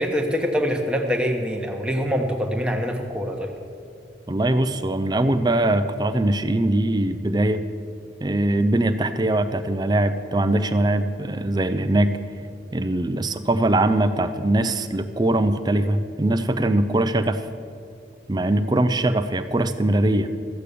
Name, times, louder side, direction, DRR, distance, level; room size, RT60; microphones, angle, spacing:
voice 1, 0.0-3.5, equal, 5° right, 1 dB, 1.1 m, -24 dB
voice 2, 4.3-7.6 8.2-12.1 12.7-17.4 18.3-20.3, right 1 dB, 20° right, 10 dB, 0.5 m, -21 dB
13.5 x 8.4 x 6.8 m, 2.5 s
head